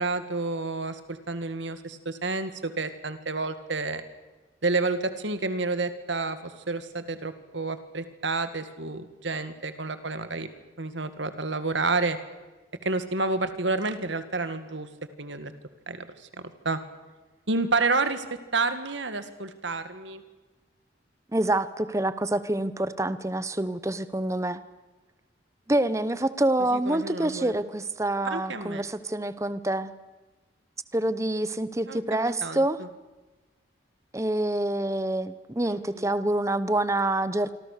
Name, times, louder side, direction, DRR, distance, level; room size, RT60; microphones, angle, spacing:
voice 1, 0.0-4.0 4.6-10.5 10.8-12.2 12.8-14.9 15.2-15.5 15.9-16.8 17.5-20.2 26.7-27.5 28.2-28.8 31.9-32.6 35.6-36.1, right 3 dB, 70° right, 10 dB, 2.0 m, -30 dB
voice 2, 21.3-24.6 25.7-29.9 30.9-32.8 34.1-37.5, right 1 dB, 15° right, 13 dB, 0.8 m, -27 dB
26.5 x 25.0 x 6.7 m, 1.2 s
head